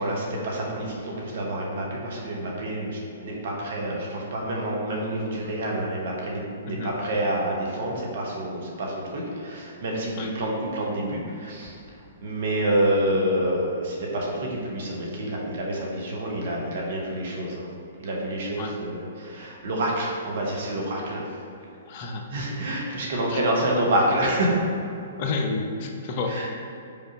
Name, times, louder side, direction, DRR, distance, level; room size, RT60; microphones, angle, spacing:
voice 1, 0.0-11.8 12.2-17.7 18.0-21.3 22.3-24.6 26.3-26.5, right 1 dB, 55° right, -2 dB, 1.4 m, -27 dB
voice 2, 21.9-22.2 23.3-23.4 25.2-26.5, left 3 dB, 40° left, 3 dB, 0.7 m, -30 dB
5.3 x 4.5 x 4.9 m, 2.6 s
figure-of-eight pair, 115°, 0 cm